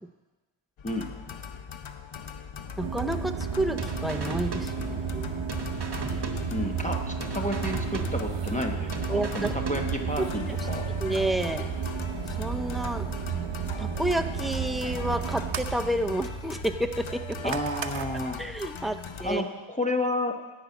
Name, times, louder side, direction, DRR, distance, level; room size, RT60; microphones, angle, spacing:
sound 1, 0.8-19.4, left 6 dB, 80° left, 0.7 m, -41 dB
voice 1, 0.8-1.2 6.5-10.8 17.4-18.4 19.2-20.4, left 1 dB, 15° left, 2 dB, 0.9 m, -31 dB
voice 2, 2.8-5.5 9.1-9.5 10.2-10.3 11.0-11.7 12.3-13.1 13.8-17.4 18.4-19.4, right 1 dB, ahead, 6 dB, 0.5 m, -30 dB
sound 2, 2.8-18.2, right 7 dB, 70° right, 0.7 m, -33 dB
sound 3, 3.8-5.2 5.5-6.9 7.2-8.6 8.9-10.2, right 2 dB, 55° right, 1.0 m, -38 dB
10.0 x 5.2 x 8.2 m, 1.2 s
wide cardioid pair, 75°, 47 cm